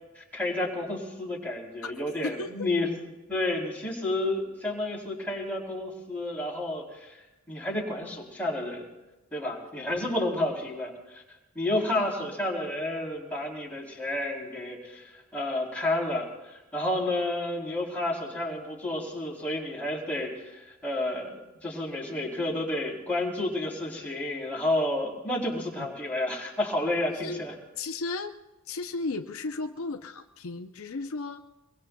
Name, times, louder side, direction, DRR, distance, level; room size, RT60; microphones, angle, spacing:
voice 1, 0.1-2.9 3.3-8.9 9.3-11.2 11.5-27.5, left 1 dB, 5° left, -4 dB, 3.1 m, -31 dB
voice 2, 2.2-2.7 11.9-12.3 25.8-25.9 27.2-27.4 27.8-28.4 28.7-31.4, left 3 dB, 65° left, 6 dB, 0.6 m, -35 dB
23.5 x 22.5 x 2.3 m, 1.0 s
head